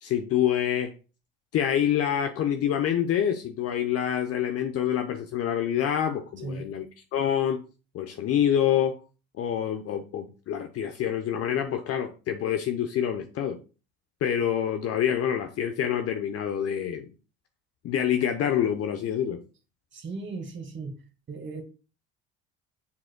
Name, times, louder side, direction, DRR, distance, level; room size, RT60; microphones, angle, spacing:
voice 1, 0.0-0.9 1.5-6.9 7.1-7.6 7.9-9.0 9.4-13.6 14.2-17.1 17.8-19.4, left 9 dB, 50° left, 0.8 m, -26 dB
voice 2, 6.4-6.7 19.9-21.0 21.3-21.6, right 3 dB, 35° right, 1.7 m, -36 dB
7.4 x 6.1 x 2.2 m
hypercardioid pair, 65°, 31 cm